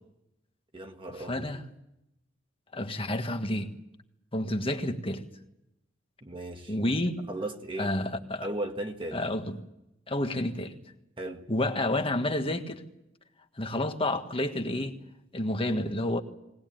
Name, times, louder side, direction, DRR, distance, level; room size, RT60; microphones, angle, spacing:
voice 1, 0.7-1.5 6.2-6.8 7.3-7.9 8.4-9.2 11.2-11.4, right 1 dB, 25° right, 1.6 m, -36 dB
voice 2, 1.3-1.6 2.7-3.7 4.3-5.2 6.7-7.2 7.8-8.5 9.1-9.6 10.1-10.8 11.5-12.8 13.6-14.9 15.3-16.2, left 1 dB, 30° left, 1.6 m, -29 dB
20.5 x 19.5 x 9.1 m
head